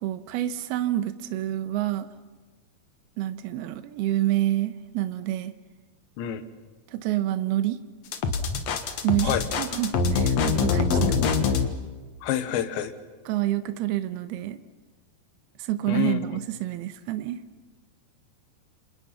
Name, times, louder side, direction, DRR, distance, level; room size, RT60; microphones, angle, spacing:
voice 1, 0.0-2.1 3.2-5.5 6.9-7.8 9.0-10.9 11.3-11.4 13.3-14.6 15.6-17.4, right 14 dB, 75° right, 11 dB, 2.8 m, -28 dB
sound 1, 8.1-11.7, left 4 dB, 60° left, 1.9 m, -24 dB
voice 2, 10.9-11.3 12.2-12.9 15.9-16.4, left 10 dB, 85° left, 10 dB, 3.7 m, -28 dB
28.5 x 27.0 x 5.8 m, 1.3 s
omnidirectional pair, 5.0 m